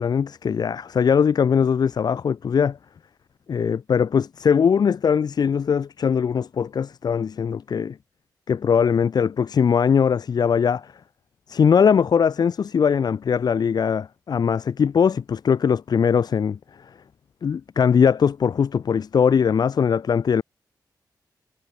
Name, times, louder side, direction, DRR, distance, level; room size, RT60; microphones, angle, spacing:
voice 1, 0.0-2.8 3.5-8.0 8.5-10.9 11.5-16.9 17.4-20.4, left 7 dB, 65° left, 1.3 m, -21 dB
wide cardioid pair, 145°, 8 cm